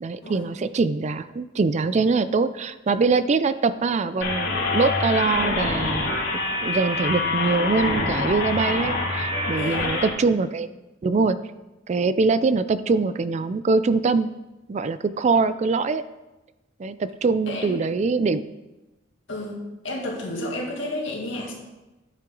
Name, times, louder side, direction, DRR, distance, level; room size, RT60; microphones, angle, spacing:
voice 1, 0.0-6.1 6.6-10.7 11.0-11.4 11.9-14.3 14.7-16.0 16.8-18.4, right 4 dB, 35° right, 14 dB, 0.4 m, -23 dB
sound 1, 4.2-10.1, left 3 dB, 70° left, 2.6 m, -25 dB
voice 2, 9.5-9.9 17.5-17.8 19.3-21.5, left 1 dB, 85° left, -1 dB, 2.2 m, -31 dB
10.0 x 7.5 x 3.9 m, 1.0 s
head